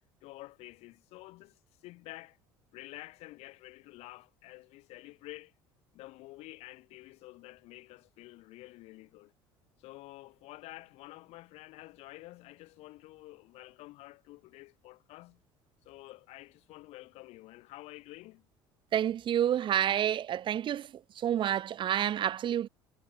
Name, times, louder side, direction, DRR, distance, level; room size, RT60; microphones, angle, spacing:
voice 1, 0.2-2.4 2.7-5.5 5.9-9.3 9.8-15.4 15.8-18.5, left 19 dB, 65° left, 3.9 m, -50 dB
voice 2, 18.9-20.9 21.2-22.7, right 10 dB, 45° right, 0.8 m, -29 dB
hypercardioid pair, 70°, 12 cm